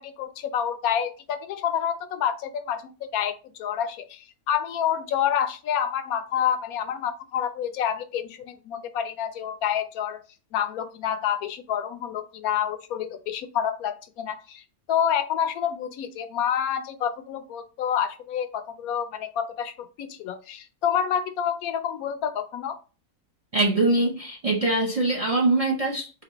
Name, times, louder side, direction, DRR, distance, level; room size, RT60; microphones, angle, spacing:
voice 1, 0.0-10.2 10.5-14.6 14.9-22.8, left 9 dB, 85° left, 10 dB, 1.0 m, -28 dB
voice 2, 23.5-26.2, right 2 dB, 40° right, 1 dB, 0.5 m, -23 dB
4.1 x 2.7 x 2.9 m, 0.33 s
omnidirectional pair, 1.5 m